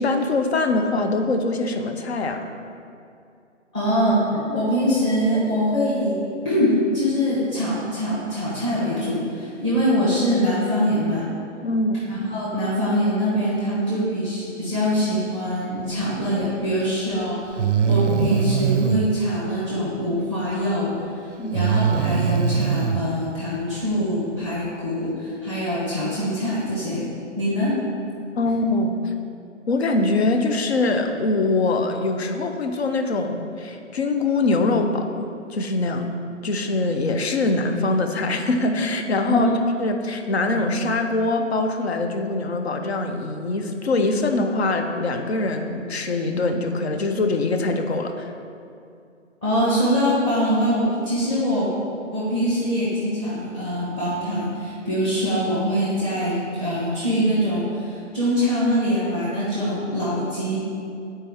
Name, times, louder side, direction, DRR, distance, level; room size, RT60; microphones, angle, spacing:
voice 1, 0.0-2.5 11.6-12.1 21.4-21.6 28.4-29.1 29.7-36.1 36.4-39.5 39.8-48.3, left 2 dB, 55° left, 6 dB, 0.8 m, -23 dB
voice 2, 3.7-6.2 6.4-11.3 12.1-20.9 21.5-27.0 27.4-27.8 39.3-39.5 49.4-51.7 52.1-60.6, equal, 15° left, -10 dB, 1.1 m, -23 dB
Breathing, 16.7-16.8 17.6-19.1 21.5-23.0, right 7 dB, 65° right, 0.5 m, -21 dB
9.5 x 4.4 x 3.5 m, 2.5 s
hypercardioid pair, 160°, 38 cm